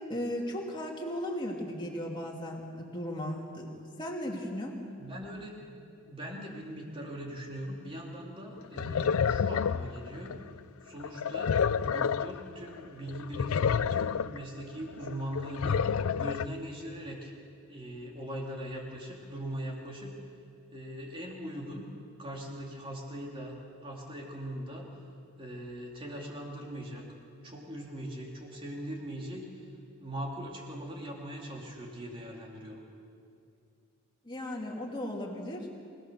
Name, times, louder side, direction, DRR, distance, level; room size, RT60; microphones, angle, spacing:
voice 1, 0.1-3.7 4.0-4.8 34.2-35.7, equal, 20° left, -2 dB, 2.9 m, -36 dB
voice 2, 5.0-5.7 6.0-10.4 10.8-17.3 17.7-20.2 20.7-21.9 22.2-24.9 25.4-27.0 27.4-29.7 30.0-32.8, equal, 25° right, -1 dB, 3.1 m, -40 dB
sound 1, 8.6-10.5 11.0-12.5 12.8-12.9 13.1-14.4 14.9-16.5, left 7 dB, 75° left, 0.4 m, -29 dB
26.0 x 18.5 x 6.8 m, 2.4 s
head